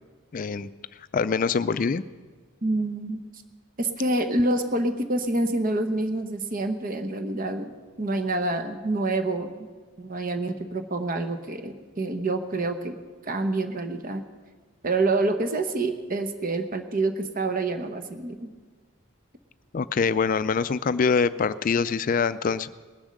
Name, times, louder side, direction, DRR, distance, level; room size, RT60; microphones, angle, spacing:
voice 1, 0.3-0.7 1.1-2.0 19.7-22.7, left 5 dB, 40° left, 14 dB, 0.3 m, -24 dB
voice 2, 2.6-3.2 3.8-7.7 8.0-9.7 10.0-13.0 13.2-14.2 14.8-18.5, right 2 dB, 40° right, 7 dB, 0.9 m, -27 dB
19.5 x 7.1 x 6.5 m, 1.4 s
head